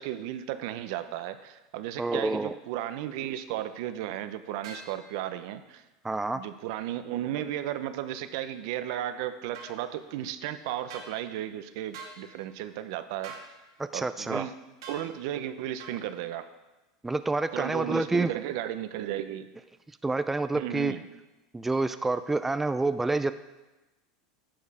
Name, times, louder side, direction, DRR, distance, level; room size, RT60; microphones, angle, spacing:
voice 1, 0.0-5.8 6.3-13.3 13.9-14.5 14.9-16.5 17.5-19.5 20.5-21.0, right 12 dB, 65° right, 11 dB, 0.7 m, -34 dB
voice 2, 2.0-2.5 6.0-6.4 13.8-14.5 17.0-18.3 20.0-20.9 21.5-23.3, right 3 dB, 10° right, 11 dB, 0.4 m, -28 dB
sound 1, 4.6-4.9 9.5-9.7 10.9-11.1 11.9-12.2 13.2-13.5 14.8-15.0 15.8-16.0, right 4 dB, 85° right, 2.2 m, -42 dB
10.5 x 6.4 x 4.8 m, 1.1 s
supercardioid pair, 115°, 3 cm